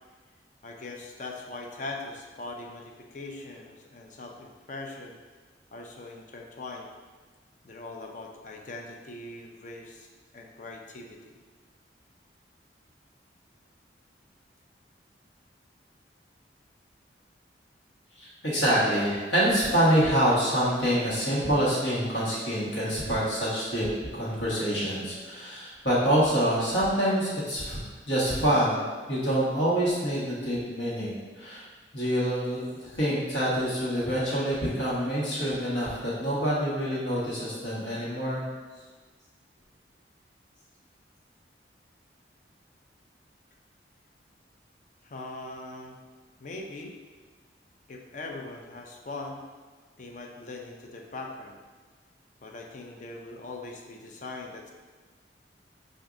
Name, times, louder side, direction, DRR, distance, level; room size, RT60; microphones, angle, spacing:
voice 1, 0.6-5.2 5.7-6.9 7.6-10.1 10.3-11.2 45.0-46.0 46.4-46.9 47.9-49.4 50.0-51.6 52.4-54.7, left 2 dB, 45° left, 1 dB, 0.4 m, -41 dB
voice 2, 18.2-27.8 28.1-31.6 31.9-38.4, equal, 80° left, -7 dB, 1.3 m, -26 dB
5.8 x 2.6 x 2.5 m, 1.4 s
head